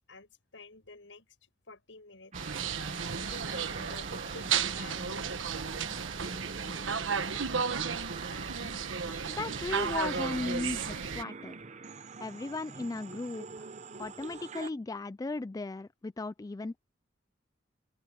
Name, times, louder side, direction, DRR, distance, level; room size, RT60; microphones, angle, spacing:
voice 1, 0.1-2.3 3.1-5.5 14.0-14.4, left 3 dB, 75° left, 6.7 m, -51 dB
sound 1, 2.3-14.7, right 4 dB, 35° right, 0.8 m, -45 dB
sound 2, 2.3-11.2, right 6 dB, 90° right, 1.3 m, -34 dB
voice 2, 9.3-11.5 12.2-13.7 14.0-16.8, left 3 dB, 20° left, 0.3 m, -36 dB
open air
head